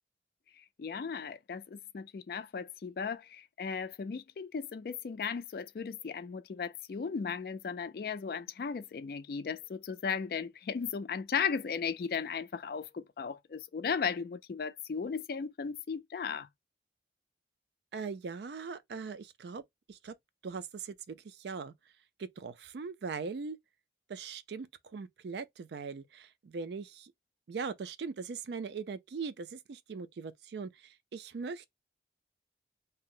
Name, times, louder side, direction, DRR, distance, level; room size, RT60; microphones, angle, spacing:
voice 1, 0.5-16.5, left 6 dB, 55° left, 0.3 m, -36 dB
voice 2, 17.9-19.6 19.9-20.1 20.4-21.7 22.2-23.6 24.1-27.1 27.5-31.7, right 5 dB, 70° right, 0.4 m, -40 dB
2.7 x 2.1 x 3.7 m
head